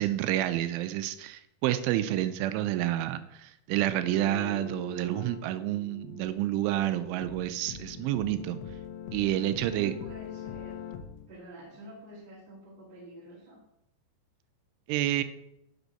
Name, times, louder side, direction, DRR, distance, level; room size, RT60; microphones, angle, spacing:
voice 1, 0.0-8.6 9.1-9.9 14.9-15.2, right 13 dB, 85° right, 11 dB, 2.9 m, -29 dB
sound 1, 4.0-11.3, left 8 dB, 75° left, 3.1 m, -43 dB
voice 2, 9.7-10.7 11.3-13.6, right 1 dB, 30° right, -3 dB, 1.0 m, -47 dB
8.0 x 6.2 x 6.4 m, 0.81 s
omnidirectional pair, 5.6 m